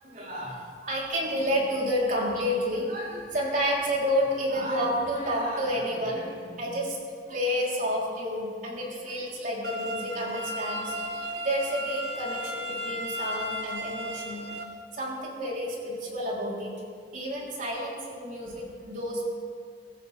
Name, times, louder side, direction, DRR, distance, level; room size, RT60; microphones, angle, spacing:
voice 1, 0.1-7.0 7.3-14.5 14.9-16.7 17.1-19.2, equal, 50° right, -4 dB, 3.9 m, -30 dB
sound 1, 9.6-14.6, equal, 70° right, 1.3 m, -34 dB
24.0 x 13.5 x 3.5 m, 2.1 s
head